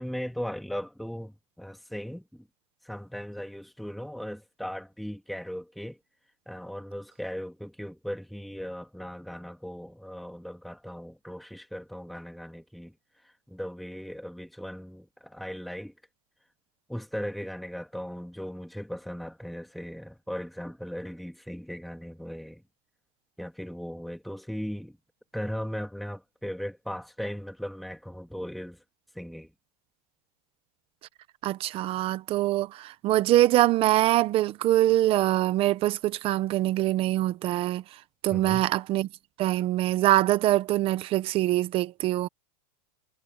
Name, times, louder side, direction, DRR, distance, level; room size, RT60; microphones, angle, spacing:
voice 1, 0.0-2.5 2.8-6.0 6.5-12.9 13.2-15.9 16.9-22.6 23.4-25.0 25.3-28.8 29.1-29.5 38.3-38.7, equal, ahead, 2.5 m, -38 dB
voice 2, 31.4-37.8 38.2-39.1 39.4-42.3, right 15 dB, 30° right, 0.9 m, -24 dB
supercardioid pair, 160°, 20 cm